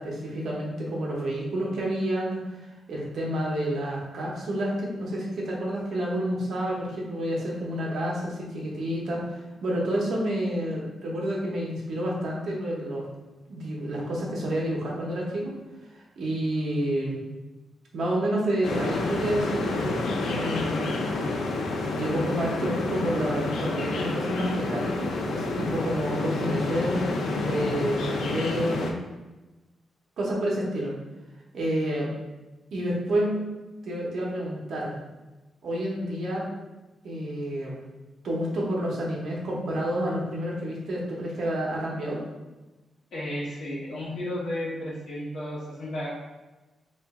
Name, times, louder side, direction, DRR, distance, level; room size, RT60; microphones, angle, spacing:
voice 1, 0.0-2.6 2.9-13.0 13.5-15.5 15.9-17.2 17.9-20.9 21.9-27.0 27.5-29.0 30.2-30.9 31.5-32.1 32.7-33.4 33.8-35.0 35.6-36.4 37.0-37.8 38.2-42.2, right 1 dB, 60° right, -3 dB, 0.8 m, -29 dB
sound 1, 18.6-28.9, left 2 dB, 85° left, 0.4 m, -29 dB
voice 2, 43.1-46.1, left 1 dB, 55° left, -5 dB, 1.0 m, -33 dB
2.9 x 2.5 x 3.5 m, 1.1 s
wide cardioid pair, 180°, 0 cm